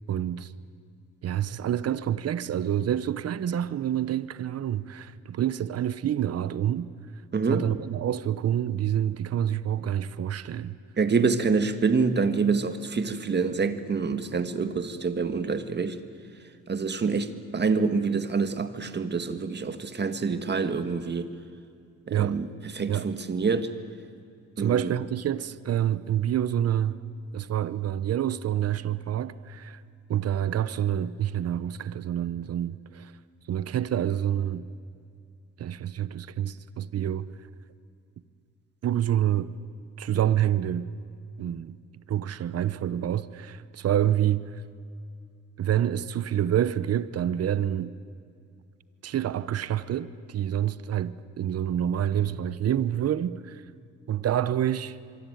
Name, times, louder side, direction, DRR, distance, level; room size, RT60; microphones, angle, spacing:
voice 1, 0.1-0.5 1.2-6.9 7.5-10.8 22.1-22.4 22.9-23.1 24.6-27.0 27.3-29.8 30.1-33.1 33.5-34.7 35.6-37.3 38.8-39.5 40.0-40.9 41.4-41.8 42.1-44.6 45.6-48.0 49.0-53.6 54.1-55.0, right 10 dB, 55° right, 0.9 m, -27 dB
voice 2, 7.3-7.7 11.0-16.0 16.7-21.3 22.1-23.7 24.6-24.9, right 4 dB, 35° right, 1.8 m, -26 dB
24.5 x 24.0 x 9.3 m
cardioid pair, 90°, 30 cm